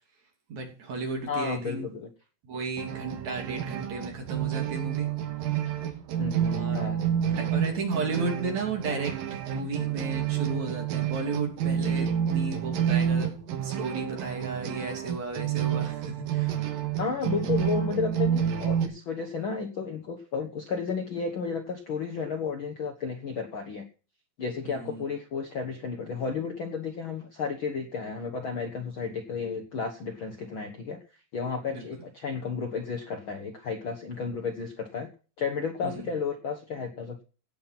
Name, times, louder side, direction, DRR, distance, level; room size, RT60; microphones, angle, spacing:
voice 1, 0.5-1.9 2.4-5.1 6.4-7.0 7.3-13.3 13.6-16.6 24.6-25.0 31.7-31.8 35.8-36.1, right 3 dB, 50° right, 2 dB, 4.1 m, -34 dB
voice 2, 1.3-2.1 6.2-7.0 17.0-23.8 24.4-31.0 31.3-35.1 35.4-37.2, left 5 dB, 90° left, 4 dB, 1.1 m, -32 dB
sound 1, 2.8-18.9, right 9 dB, 75° right, 3.1 m, -29 dB
17.0 x 5.8 x 6.0 m, 0.37 s
omnidirectional pair, 4.3 m